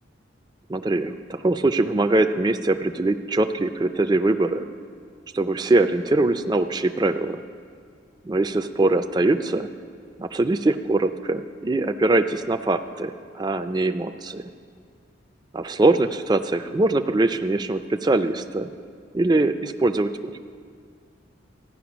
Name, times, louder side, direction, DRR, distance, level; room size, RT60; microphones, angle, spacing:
voice 1, 0.7-4.7 5.3-7.4 8.3-9.7 10.2-14.5 15.5-18.7 19.1-20.4, right 2 dB, 20° right, 8 dB, 0.4 m, -22 dB
14.5 x 10.0 x 6.1 m, 2.2 s
head